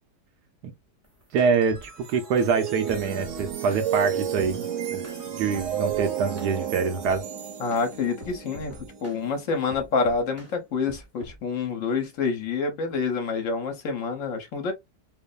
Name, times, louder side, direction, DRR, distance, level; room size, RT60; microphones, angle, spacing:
sound 1, 1.0-1.9 2.4-2.5 2.9-3.9 4.4-4.6 5.0-5.2 5.5-6.1 6.4-6.6 7.0-7.2 7.7-7.8 8.2-9.2 9.7-10.5 10.9-11.4, left 1 dB, 15° right, 0.5 m, -44 dB
voice 1, 1.3-4.6 4.9-5.0 5.4-7.2, right 5 dB, 75° right, 1.2 m, -25 dB
sound 2, 1.4-10.6, right 9 dB, 55° right, 1.0 m, -33 dB
voice 2, 7.6-8.7 9.0-14.7, left 4 dB, 55° left, 1.1 m, -27 dB
3.1 x 2.0 x 2.3 m
omnidirectional pair, 1.8 m